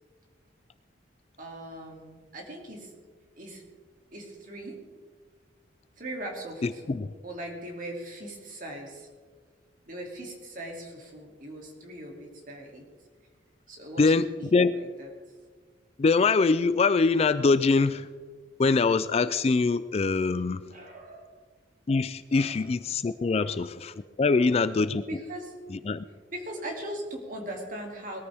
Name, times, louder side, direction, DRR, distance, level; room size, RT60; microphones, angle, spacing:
voice 1, 1.4-2.9 3.4-3.6 4.1-4.8 6.0-9.1 9.9-12.8 13.7-14.5 15.0-15.1 20.7-21.4 22.3-22.6 23.3-23.6 24.2-24.5 25.1-25.5 26.3-28.2, right 1 dB, 45° right, 0 dB, 2.8 m, -40 dB
voice 2, 6.6-7.1 14.0-14.7 16.0-18.1 18.6-20.7 21.9-25.0 25.7-26.0, left 4 dB, 35° left, 14 dB, 0.3 m, -24 dB
20.5 x 14.0 x 3.5 m, 1.5 s
head